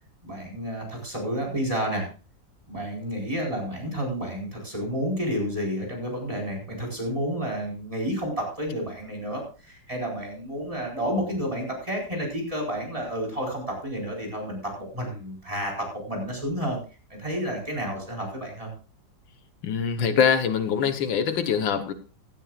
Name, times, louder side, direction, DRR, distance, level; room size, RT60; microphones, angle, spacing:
voice 1, 0.2-2.1 2.7-16.8 17.1-18.7, equal, 15° right, 0 dB, 4.8 m, -30 dB
voice 2, 19.6-21.9, left 7 dB, 90° left, 9 dB, 1.9 m, -23 dB
16.0 x 12.5 x 2.4 m, 0.35 s
omnidirectional pair, 2.0 m